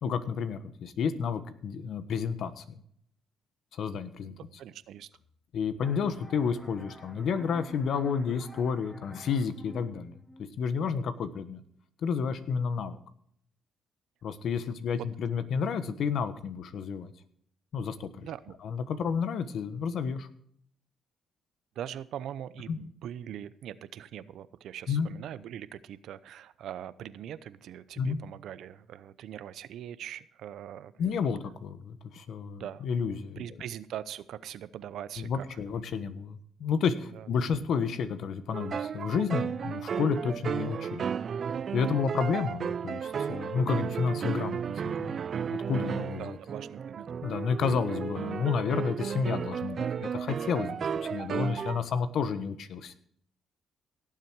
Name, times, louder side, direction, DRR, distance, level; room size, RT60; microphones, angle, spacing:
voice 1, 0.0-2.8 3.7-4.3 5.5-10.1 10.6-11.6 12.0-13.0 14.2-17.1 17.7-18.3 18.6-20.3 22.7-22.8 24.9-25.1 28.0-28.2 31.0-33.4 35.2-41.0 41.7-45.2 45.5-46.4 47.2-50.8 51.0-52.9, left 6 dB, 70° left, 12 dB, 1.2 m, -31 dB
voice 2, 4.3-5.1 15.0-15.1 18.2-18.6 21.8-30.9 32.6-32.9 33.4-35.6 37.1-37.3 46.2-47.1, right 10 dB, 75° right, 16 dB, 0.7 m, -41 dB
sound 1, 5.8-11.2, equal, 10° left, 2.5 m, -48 dB
sound 2, 38.5-51.8, right 7 dB, 50° right, 0.4 m, -33 dB
17.5 x 7.6 x 4.7 m, 0.66 s
cardioid pair, 90°, 0 cm